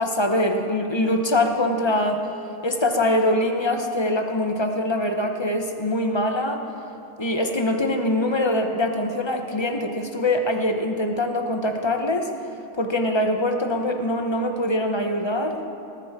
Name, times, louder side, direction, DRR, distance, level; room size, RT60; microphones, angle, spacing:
voice 1, 0.0-2.2 2.6-6.7 7.2-12.3 12.8-15.6, left 1 dB, 20° left, 4 dB, 1.0 m, -23 dB
19.0 x 12.0 x 4.9 m, 2.7 s
omnidirectional pair, 1.4 m